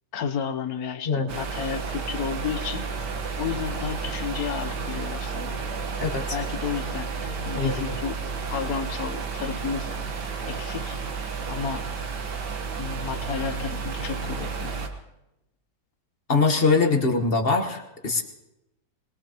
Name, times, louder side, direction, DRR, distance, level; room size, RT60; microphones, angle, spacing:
voice 1, 0.1-2.9 3.4-5.6 6.3-8.2 8.5-10.0 10.5-11.0 11.5-11.9 12.8-14.8, left 7 dB, 60° left, 10 dB, 1.3 m, -32 dB
sound 1, 1.3-14.9, right 5 dB, 70° right, 1.9 m, -32 dB
voice 2, 6.0-6.4 7.5-8.0 16.3-18.2, left 4 dB, 35° left, 4 dB, 1.5 m, -23 dB
21.5 x 21.5 x 3.0 m, 0.93 s
omnidirectional pair, 1.9 m